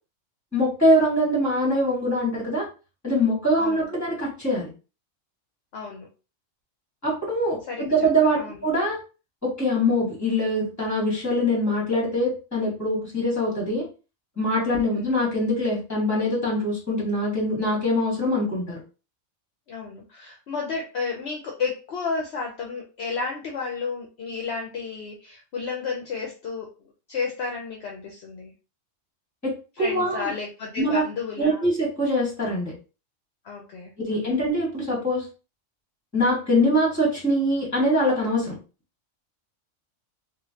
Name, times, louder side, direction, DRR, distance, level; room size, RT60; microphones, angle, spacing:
voice 1, 0.5-2.7 3.0-4.7 7.0-9.0 9.4-13.9 14.4-18.8 29.4-30.3 30.8-31.0 31.4-32.7 34.0-35.3 36.1-38.5, equal, 15° left, -4 dB, 1.5 m, -23 dB
voice 2, 5.7-6.1 7.7-8.1 8.3-8.7 14.8-15.1 19.7-26.7 27.1-28.5 29.8-31.7 33.4-34.4, left 5 dB, 65° left, 0 dB, 0.8 m, -32 dB
3.1 x 2.5 x 2.7 m, 0.33 s
omnidirectional pair, 1.3 m